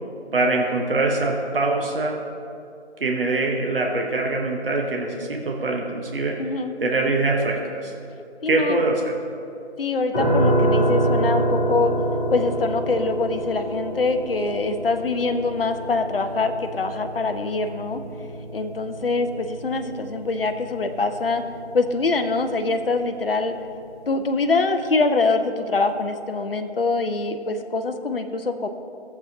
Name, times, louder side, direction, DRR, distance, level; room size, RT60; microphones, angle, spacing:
voice 1, 0.3-2.2 3.0-6.4 6.8-7.9 8.5-9.1, right 2 dB, 50° right, 0 dB, 1.0 m, -23 dB
voice 2, 6.4-6.7 8.4-8.8 9.8-11.9 12.3-18.0 18.5-21.4 21.7-23.5 24.1-28.7, left 3 dB, 55° left, 7 dB, 0.6 m, -24 dB
sound 1, 10.1-23.0, right 1 dB, 10° left, 1.8 m, -27 dB
14.5 x 7.3 x 2.8 m, 2.6 s
figure-of-eight pair, 165°, 35 cm